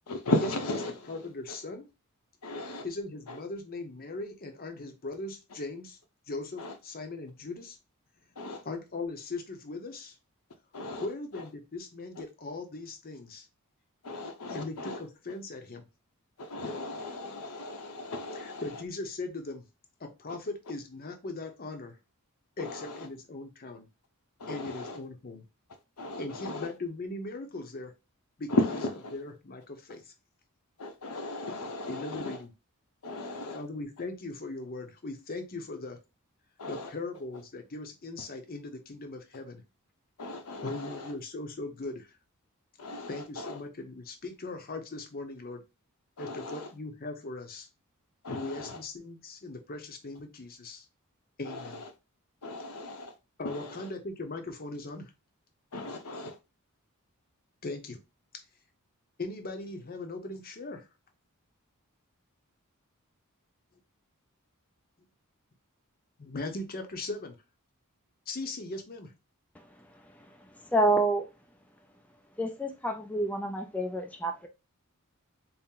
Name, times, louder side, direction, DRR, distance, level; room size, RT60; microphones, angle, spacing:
voice 1, 0.1-1.1 2.4-2.9 3.3-3.4 6.6-6.7 8.4-8.6 10.7-11.1 11.3-11.4 14.0-15.0 16.4-18.8 22.6-23.1 24.4-25.0 26.0-26.7 28.5-29.2 30.8-32.4 33.0-33.6 36.6-36.9 40.2-41.1 42.8-43.6 46.2-46.7 48.2-48.8 51.4-51.9 52.4-53.1 53.4-53.9 55.7-56.4, left 2 dB, 80° left, 0.7 m, -35 dB
voice 2, 1.1-1.9 2.8-6.0 6.3-7.8 8.6-10.2 11.0-13.5 14.5-15.8 18.3-19.7 20.0-22.0 22.6-23.9 24.5-25.4 26.2-27.9 28.4-28.5 29.1-30.1 31.9-32.5 33.5-36.0 36.7-39.6 40.6-42.1 43.1-45.6 46.2-47.7 48.3-50.9 51.4-51.8 53.4-55.1 57.6-58.0 59.2-60.9 66.2-67.4 68.3-69.1, left 2 dB, 40° left, 0.7 m, -39 dB
voice 3, 70.6-71.3 72.4-74.5, right 1 dB, 5° left, 0.3 m, -28 dB
4.2 x 2.0 x 3.7 m
head